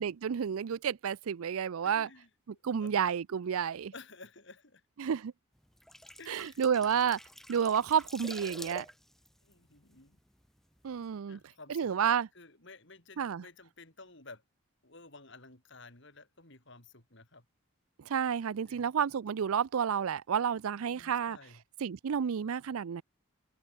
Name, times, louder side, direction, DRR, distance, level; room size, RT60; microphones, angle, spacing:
voice 1, 0.0-2.1 2.6-3.9 5.0-5.3 6.3-7.2 7.5-8.9 10.8-11.4 11.7-12.3 13.2-13.4 18.0-21.4 21.8-23.0, right 7 dB, 75° right, 0.4 m, -30 dB
voice 2, 1.8-3.0 3.9-4.8 6.2-7.0 7.8-8.0 9.4-10.2 11.3-14.4 14.8-17.4 18.7-18.9 20.8-21.6, left 3 dB, 55° left, 4.2 m, -53 dB
sound 1, 5.6-10.5 10.8-11.0, equal, ahead, 1.1 m, -48 dB
head